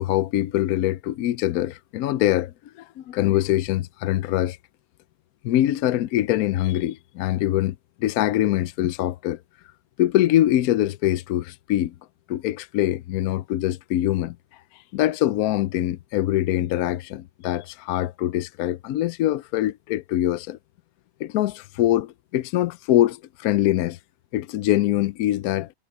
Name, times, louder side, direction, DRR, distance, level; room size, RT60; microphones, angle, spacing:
voice 1, 0.0-4.6 5.4-9.4 10.0-11.9 12.3-14.4 14.7-20.6 21.2-24.0 24.3-25.7, left 13 dB, 70° left, 0.9 m, -23 dB
omnidirectional pair, 1.8 m